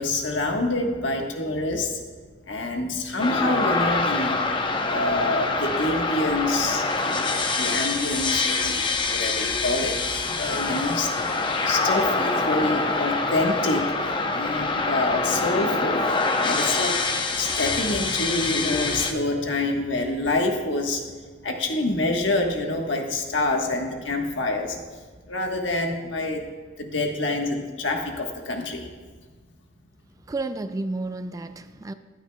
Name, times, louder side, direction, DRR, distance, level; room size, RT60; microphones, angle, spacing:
voice 1, 0.0-2.0 2.5-4.5 4.8-11.1 11.4-16.1 16.4-21.1 21.4-26.5 26.8-28.9, left 2 dB, 80° left, 2 dB, 1.3 m, -27 dB
sound 1, 3.2-19.1, left 3 dB, 25° left, 0.7 m, -25 dB
voice 2, 30.3-31.9, right 2 dB, 20° right, 11 dB, 0.3 m, -31 dB
15.0 x 11.5 x 2.3 m, 1.5 s
head